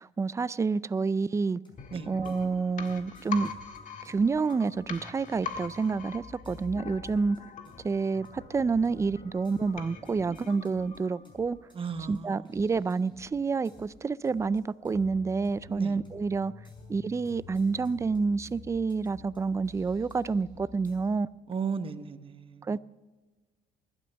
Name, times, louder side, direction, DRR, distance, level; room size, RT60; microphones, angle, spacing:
voice 1, 0.0-1.6 2.1-3.5 4.0-7.4 7.8-11.6 12.1-16.5 16.9-21.3 22.6-22.8, right 4 dB, 15° right, 0.4 m, -28 dB
sound 1, 1.5-21.0, left 3 dB, 30° left, 5.6 m, -53 dB
sound 2, 1.8-11.5 11.8-11.9, left 6 dB, 50° left, 1.7 m, -43 dB
voice 2, 11.7-12.4 15.7-16.0 21.5-22.8, right 6 dB, 30° right, 1.0 m, -35 dB
21.0 x 12.0 x 3.4 m
cardioid pair, 110°, 17 cm